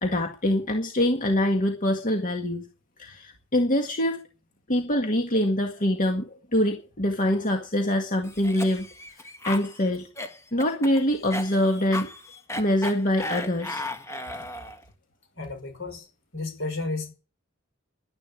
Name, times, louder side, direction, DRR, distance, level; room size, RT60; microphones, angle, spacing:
voice 1, 0.0-2.7 3.0-4.2 4.7-8.9 9.1-10.1 10.5-12.1 12.6-13.8 14.3-14.4, left 1 dB, 40° left, 1.9 m, -24 dB
Cough, 8.2-14.8, left 2 dB, 15° left, 1.7 m, -35 dB
voice 2, 15.4-16.1 16.3-17.1, left 3 dB, 70° left, 5.4 m, -32 dB
11.5 x 10.5 x 8.4 m
head